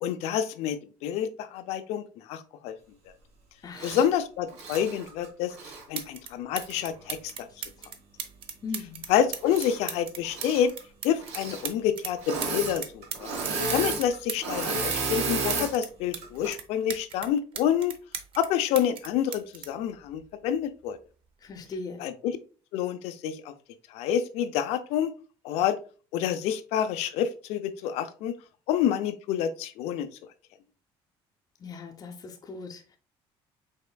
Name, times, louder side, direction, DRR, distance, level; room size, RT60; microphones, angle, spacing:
voice 1, 0.0-2.8 3.8-5.5 5.9-7.5 9.1-10.7 11.0-13.3 13.7-17.9 18.4-21.0 22.0-22.4 22.7-23.5 23.9-25.1 25.4-25.8 26.1-28.3 28.7-30.1, left 9 dB, 80° left, 11 dB, 0.5 m, -28 dB
voice 2, 3.6-4.1 7.8-7.9 8.6-9.0 21.4-22.0 31.6-33.0, left 4 dB, 35° left, 2 dB, 0.6 m, -39 dB
Engine / Mechanisms, 3.8-4.1 4.5-5.8 6.6-6.7 9.4-10.0 10.2-10.6 11.2-11.7 12.2-12.8 13.0-15.7 16.2-16.5, right 4 dB, 80° right, 1.2 m, -32 dB
sound 1, 5.5-5.6 5.9-6.3 6.6-12.1 12.4-16.2 16.5-18.5 18.8-20.6 21.5-21.7, right 7 dB, 55° right, 0.7 m, -38 dB
5.4 x 3.6 x 2.3 m, 0.37 s
cardioid pair, 100°, 11 cm